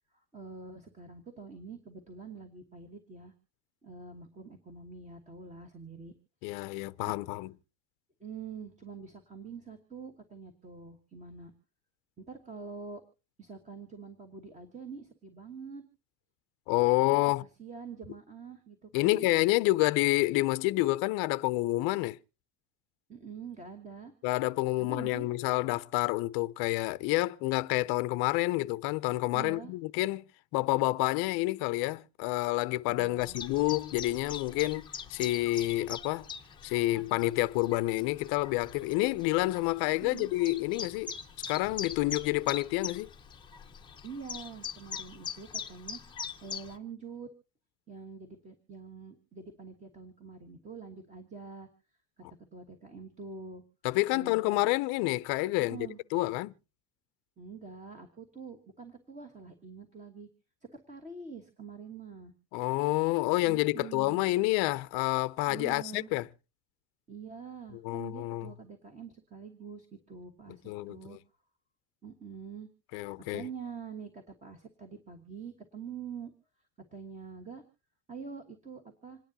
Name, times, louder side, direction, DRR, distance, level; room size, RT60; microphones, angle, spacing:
voice 1, 0.1-3.3 3.8-6.1 8.2-11.5 12.2-13.0 13.4-15.8 17.6-19.3 23.1-24.1 24.8-25.3 29.3-29.7 32.9-33.4 40.0-40.3 44.0-47.3 47.9-51.7 52.5-53.6 54.1-54.7 55.6-56.0 57.4-60.3 60.6-62.3 63.4-64.2 65.5-66.1 67.1-71.2 72.0-72.7 73.3-76.3 76.9-77.6 78.1-79.2, right 5 dB, 15° right, 1.3 m, -45 dB
voice 2, 6.4-7.5 16.7-17.4 18.9-22.2 24.2-30.2 30.5-36.3 36.6-41.1 41.5-43.1 53.8-55.8 56.1-56.5 62.5-66.3 67.8-68.5 70.7-71.2 72.9-73.4, left 19 dB, 50° left, 0.6 m, -28 dB
Chirp tweet, 33.2-46.8, left 7 dB, 10° left, 0.8 m, -43 dB
27.0 x 10.5 x 2.7 m
cardioid pair, 175°, 48 cm